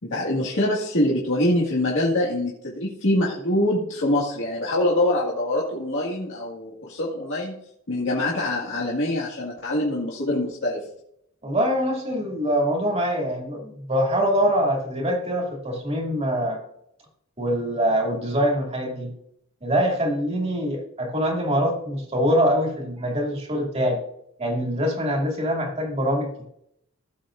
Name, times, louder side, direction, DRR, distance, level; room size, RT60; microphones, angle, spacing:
voice 1, 0.0-7.6 7.9-10.9, left 1 dB, 65° left, -5 dB, 2.0 m, -24 dB
voice 2, 11.4-16.6 17.4-19.1 19.6-24.0 24.4-26.5, equal, 30° right, 0 dB, 2.6 m, -24 dB
16.5 x 7.1 x 2.6 m, 0.73 s
head